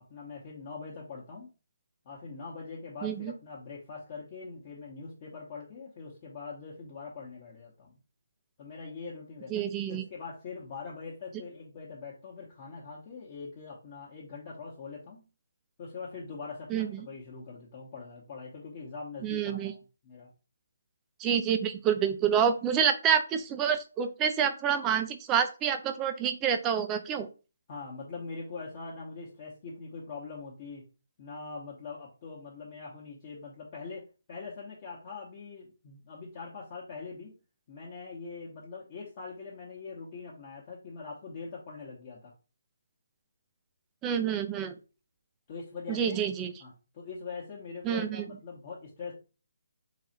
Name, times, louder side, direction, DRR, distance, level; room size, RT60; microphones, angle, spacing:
voice 1, 0.1-1.5 2.0-8.0 8.6-15.2 15.8-20.3 27.7-30.8 31.2-37.3 37.7-42.3 45.5-46.3 46.6-49.1, left 4 dB, 35° left, -5 dB, 1.1 m, -43 dB
voice 2, 3.0-3.3 9.5-10.0 16.7-17.1 19.2-19.7 21.2-27.3 44.0-44.8 45.9-46.5 47.8-48.3, right 8 dB, 15° right, 8 dB, 0.5 m, -28 dB
4.1 x 2.4 x 4.2 m, 0.33 s
hypercardioid pair, 155°, 0 cm